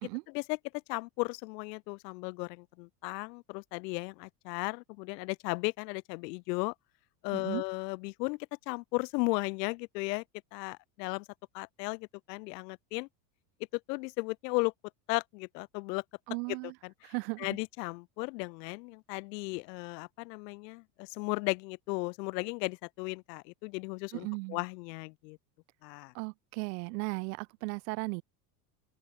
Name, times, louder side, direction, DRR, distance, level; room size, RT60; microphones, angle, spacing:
voice 1, 0.9-6.7 7.2-8.4 8.7-10.2 10.5-11.3 11.5-13.1 13.7-14.7 15.1-16.0 16.8-25.4 25.8-26.1, left 26 dB, 80° left, 1.7 m, -35 dB
voice 2, 7.3-7.6 16.3-16.7 17.0-17.5 24.1-24.6 26.1-28.2, right 29 dB, 75° right, 2.2 m, -36 dB
open air
supercardioid pair, 145°, 49 cm